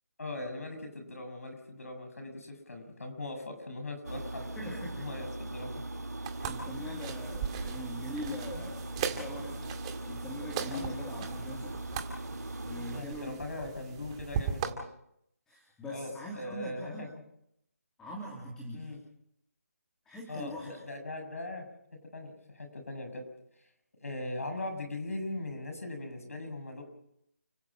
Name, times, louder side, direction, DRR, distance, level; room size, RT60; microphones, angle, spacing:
voice 1, 0.2-5.7 8.5-8.7 10.7-10.9 12.9-14.8 15.9-17.1 18.7-19.0 20.3-21.7 22.1-23.2 24.0-26.8, left 2 dB, 65° left, 6 dB, 7.4 m, -40 dB
sound 1, 4.0-13.0, right 2 dB, 90° right, 1.9 m, -40 dB
voice 2, 4.6-5.0 6.4-9.7 10.0-11.7 12.6-13.7 15.5-17.1 18.0-18.9 20.0-20.7, left 1 dB, 5° left, -2 dB, 3.3 m, -42 dB
sound 2, 6.2-14.7, right 8 dB, 20° right, 2.1 m, -39 dB
30.0 x 16.5 x 6.3 m, 0.76 s
figure-of-eight pair, 155°, 8 cm